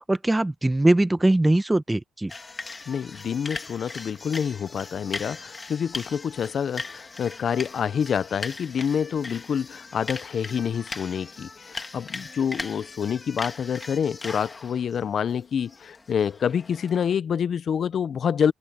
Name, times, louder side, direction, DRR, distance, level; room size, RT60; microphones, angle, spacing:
voice 1, 0.1-2.3, right 1 dB, 15° right, 1.0 m, -21 dB
sound 1, 2.3-17.2, left 3 dB, 25° left, 2.1 m, -39 dB
voice 2, 2.9-18.5, left 7 dB, 55° left, 0.6 m, -27 dB
cardioid pair, 90°, 0 cm